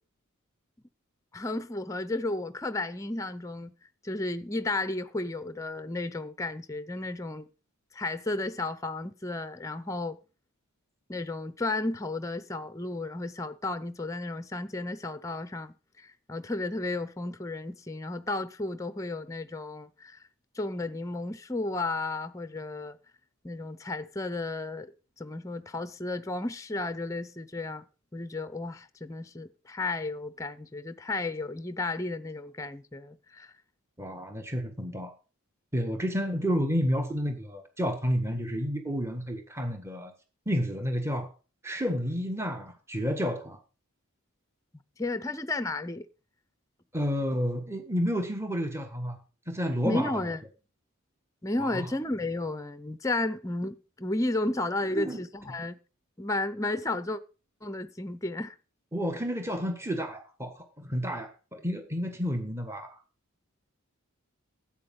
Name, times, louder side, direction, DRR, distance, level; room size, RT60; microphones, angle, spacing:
voice 1, 1.3-3.7 4.0-7.5 7.9-10.2 11.1-20.2 20.5-23.0 23.4-24.9 25.2-27.9 28.1-33.5 45.0-46.1 49.8-50.4 51.4-55.8 56.2-57.2 57.6-58.5, left 2 dB, 15° left, 0.6 m, -33 dB
voice 2, 34.0-35.1 35.7-40.1 40.4-41.3 41.6-43.6 46.9-49.2 49.5-50.3 51.6-51.9 54.9-55.2 58.9-63.0, equal, 10° right, 1.5 m, -30 dB
12.0 x 8.6 x 5.4 m
head